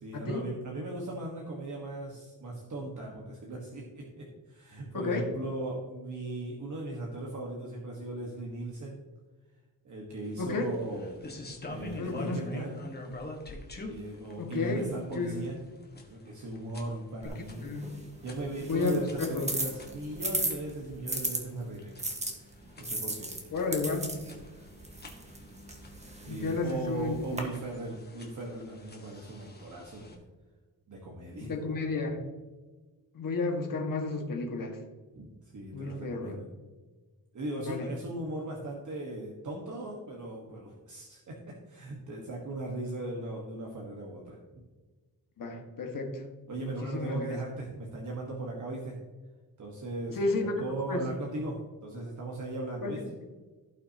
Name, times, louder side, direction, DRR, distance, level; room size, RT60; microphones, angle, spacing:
voice 1, 0.0-9.0 9.8-11.2 11.7-12.8 13.8-15.6 15.9-17.7 18.2-23.3 26.2-30.2 30.9-31.5 35.1-36.5 37.3-44.6 46.5-49.0 49.6-50.3 50.6-53.1, right 2 dB, 50° right, -1 dB, 1.5 m, -38 dB
voice 2, 4.9-5.3 10.4-10.7 12.0-12.6 14.4-14.9 15.1-15.4 17.6-17.9 18.6-19.5 23.5-24.2 26.3-27.1 31.4-32.2 33.1-34.8 35.7-36.4 37.6-37.9 45.4-46.2 46.6-47.4 50.1-50.6 50.9-51.0 52.8-52.9, left 3 dB, 60° left, 2 dB, 1.8 m, -32 dB
sound 1, 10.2-30.1, left 2 dB, 25° left, 1.5 m, -47 dB
sound 2, 17.2-21.4 22.0-27.4, right 2 dB, 20° right, 1.4 m, -37 dB
16.0 x 5.8 x 2.9 m, 1.3 s
wide cardioid pair, 170°, 37 cm